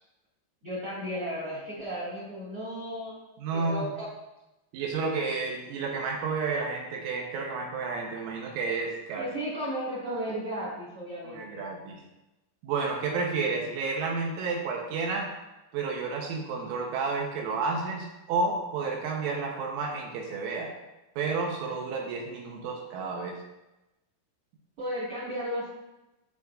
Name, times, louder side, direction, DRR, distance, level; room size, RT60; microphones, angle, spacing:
voice 1, 0.6-3.2 3.5-4.1 9.2-11.6 24.8-25.7, equal, 50° right, -7 dB, 1.6 m, -34 dB
voice 2, 3.4-3.9 4.7-9.3 11.2-12.0 12.6-15.3 15.7-20.7 21.2-23.4, right 4 dB, 80° right, 0 dB, 3.4 m, -31 dB
15.0 x 5.2 x 2.6 m, 0.98 s
omnidirectional pair, 6.0 m